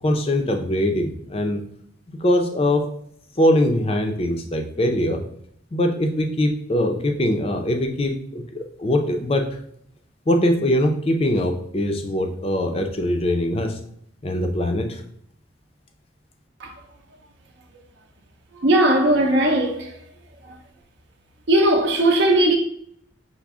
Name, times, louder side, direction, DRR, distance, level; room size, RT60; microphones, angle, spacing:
voice 1, 0.0-1.6 2.1-2.9 3.4-5.2 5.7-9.5 10.3-13.8 14.2-15.0, left 1 dB, 30° left, 0.5 m, -22 dB
voice 2, 18.6-19.9 20.4-20.6 21.5-22.6, right 1 dB, 60° right, 0.6 m, -18 dB
5.9 x 2.1 x 3.5 m
head